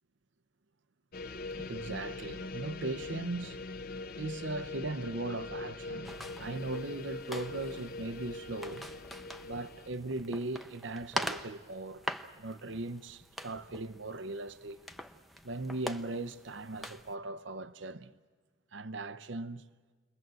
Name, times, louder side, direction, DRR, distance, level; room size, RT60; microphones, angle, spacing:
sound 1, 1.1-9.9, left 3 dB, 50° left, 0.9 m, -42 dB
voice 1, 1.6-3.6 4.2-8.9 9.4-12.1 12.4-14.8 15.4-18.1 18.7-19.7, right 2 dB, 65° right, 0.8 m, -39 dB
sound 2, 6.0-17.1, equal, ahead, 0.7 m, -43 dB
29.5 x 22.0 x 7.7 m
head